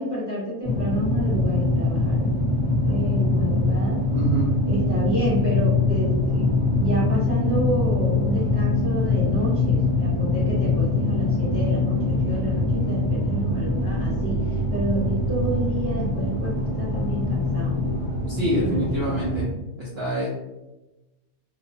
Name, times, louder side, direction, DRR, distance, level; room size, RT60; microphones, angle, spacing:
voice 1, 0.0-2.3 2.8-4.0 4.7-17.8 18.5-19.1, equal, 20° left, -11 dB, 1.0 m, -29 dB
sound 1, 0.6-19.5, left 2 dB, 55° left, 1.0 m, -23 dB
voice 2, 4.1-4.5 18.3-19.5 19.8-20.3, right 1 dB, 55° right, -7 dB, 0.7 m, -25 dB
2.8 x 2.0 x 2.5 m, 1.0 s
omnidirectional pair, 1.6 m